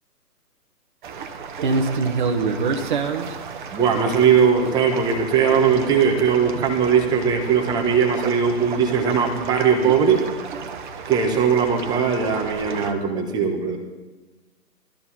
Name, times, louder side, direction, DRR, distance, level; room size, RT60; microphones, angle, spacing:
sound 1, 1.0-12.9, right 4 dB, 30° right, 1.3 m, -29 dB
voice 1, 3.7-10.2 11.1-13.8, right 6 dB, 10° right, 3 dB, 1.3 m, -19 dB
21.5 x 14.0 x 4.3 m, 1.2 s
figure-of-eight pair, 140°, 48 cm